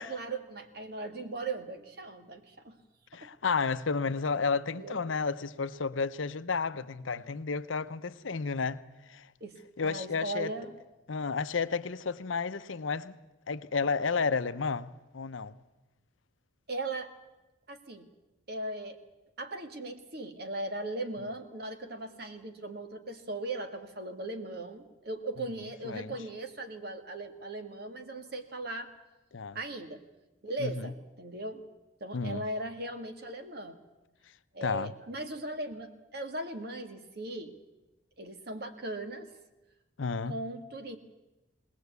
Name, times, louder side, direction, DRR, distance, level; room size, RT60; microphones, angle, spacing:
voice 1, 0.0-2.8 3.2-3.3 4.7-5.0 9.4-9.5 9.8-10.7 16.7-17.1 17.7-18.1 18.5-19.0 19.4-28.9 29.5-30.0 30.4-31.6 32.0-33.8 34.5-37.5 38.2-39.3 40.3-41.0, right 2 dB, 50° right, 1.8 m, -38 dB
voice 2, 3.1-8.8 9.1-9.3 9.8-10.5 11.1-13.2 13.5-15.6 25.8-26.2 29.3-29.6 30.6-30.9 32.1-32.4 34.6-34.9 40.0-40.3, left 5 dB, 80° left, 0.7 m, -32 dB
20.0 x 18.5 x 8.2 m
head